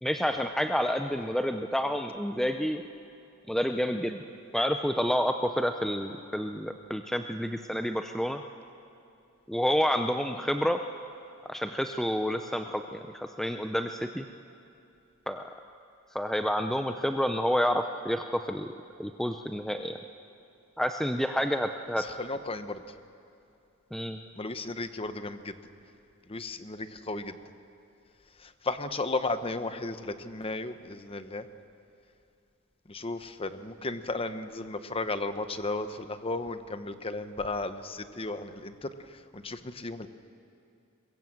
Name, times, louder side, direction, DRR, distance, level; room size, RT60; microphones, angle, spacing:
voice 1, 0.0-2.8 3.5-4.2 4.5-8.4 9.5-10.8 11.5-14.3 15.3-15.4 16.1-20.0 20.8-22.0 23.9-24.2, equal, ahead, 6 dB, 0.6 m, -29 dB
voice 2, 22.0-22.8 24.4-25.5 26.3-27.3 28.4-31.5 32.9-40.1, left 2 dB, 25° left, 10 dB, 0.9 m, -34 dB
23.0 x 21.5 x 7.8 m, 2.6 s
head